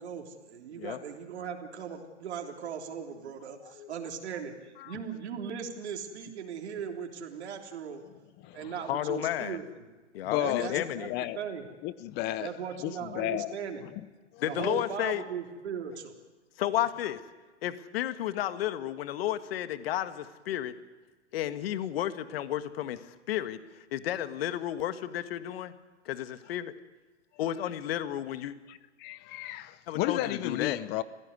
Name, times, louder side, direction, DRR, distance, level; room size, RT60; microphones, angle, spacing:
voice 1, 0.0-8.0 8.5-9.7 10.4-11.1 11.3-11.7 12.4-13.8 14.5-16.1, right 7 dB, 65° right, 2 dB, 3.5 m, -38 dB
voice 2, 8.9-9.6 10.1-11.1 14.4-15.2 16.6-17.2 17.6-20.7 21.3-25.7 26.0-26.7 27.4-28.5 29.9-30.8, left 12 dB, 55° left, 11 dB, 1.6 m, -32 dB
voice 3, 10.3-11.4 11.8-12.5 12.8-13.6 14.3-14.4 28.7-31.0, left 15 dB, 30° left, 16 dB, 0.8 m, -33 dB
27.0 x 16.0 x 9.7 m, 1.3 s
hypercardioid pair, 125°, 35 cm